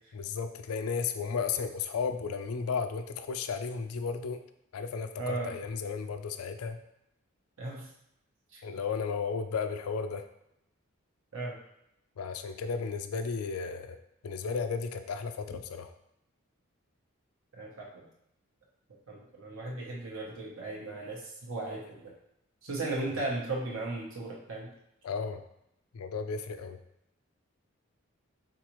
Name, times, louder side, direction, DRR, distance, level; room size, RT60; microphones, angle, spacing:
voice 1, 0.1-4.4 4.7-6.8 8.6-10.3 12.2-14.0 14.2-15.9 25.0-25.4 25.9-26.8, left 5 dB, 85° left, 8 dB, 0.4 m, -34 dB
voice 2, 5.2-5.5 7.6-7.9 8.5-8.6 11.3-11.6 17.6-18.1 19.1-22.1 22.6-24.7, right 2 dB, 70° right, -3 dB, 0.9 m, -36 dB
4.6 x 3.7 x 3.0 m, 0.82 s
head